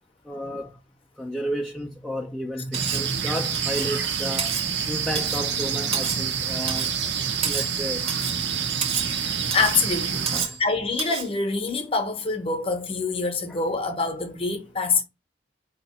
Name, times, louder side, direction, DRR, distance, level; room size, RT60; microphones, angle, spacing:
voice 1, 0.2-0.8 1.2-4.5 4.9-6.9 7.4-8.0 10.3-10.6 13.5-13.7, equal, 5° left, 0.4 m, -32 dB
Cutlery silverware, 2.7-3.1 3.5-3.9 4.4-4.7 5.1-5.5 5.9-6.3 6.7-7.0 7.4-7.8 8.1-8.4 8.8-9.1 9.5-9.8 10.3-10.6 11.0-11.3, right 6 dB, 30° right, 0.8 m, -30 dB
sound 1, 2.7-10.4, right 7 dB, 70° right, 0.8 m, -27 dB
voice 2, 9.3-10.3 10.6-15.0, left 4 dB, 30° left, 0.8 m, -25 dB
4.4 x 2.8 x 4.1 m
head